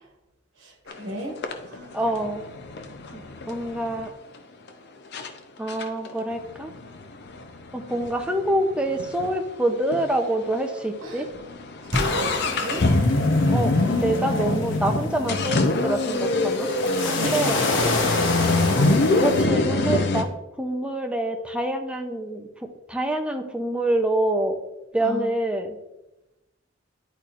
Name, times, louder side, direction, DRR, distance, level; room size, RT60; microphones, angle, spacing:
voice 1, 0.6-1.4 1.7-1.9 11.0-11.2 11.9-12.9 17.1-17.4 25.0-25.3, equal, 70° right, 0 dB, 1.6 m, -31 dB
sound 1, 0.9-1.0 1.4-4.1 4.7-4.8 5.1-5.3 5.7-9.4 9.6-9.7 9.9-10.0 10.6-10.8 11.1-20.2, left 2 dB, 60° left, 0.6 m, -24 dB
voice 2, 1.9-2.4 3.1-4.1 5.6-6.7 7.7-11.3 13.5-16.7 17.0-17.6 18.8-18.9 19.2-20.3 20.6-22.5 22.9-24.6 24.9-25.8, right 1 dB, 5° right, 4 dB, 0.6 m, -26 dB
sound 2, 11.9-19.4, left 3 dB, 75° left, 1.2 m, -29 dB
10.5 x 4.3 x 2.5 m, 0.96 s
head